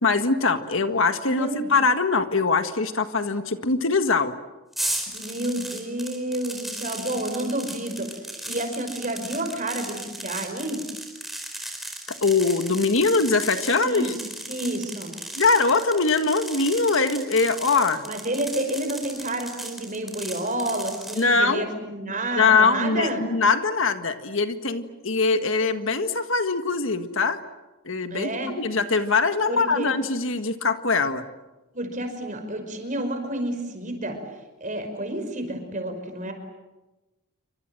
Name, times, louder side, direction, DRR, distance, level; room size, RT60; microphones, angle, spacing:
voice 1, 0.0-4.3 12.2-14.1 15.4-18.0 21.1-21.7 22.4-27.4 27.9-31.2, left 4 dB, 65° left, 8 dB, 1.7 m, -22 dB
voice 2, 1.2-1.7 5.1-8.1 8.4-10.8 13.8-14.1 14.5-15.1 18.0-23.3 28.1-28.5 29.5-29.9 31.7-34.2 34.6-36.3, right 1 dB, 35° right, 6 dB, 5.3 m, -30 dB
sound 1, 4.7-21.3, right 1 dB, ahead, 4.6 m, -36 dB
29.0 x 25.5 x 7.8 m, 1.1 s
head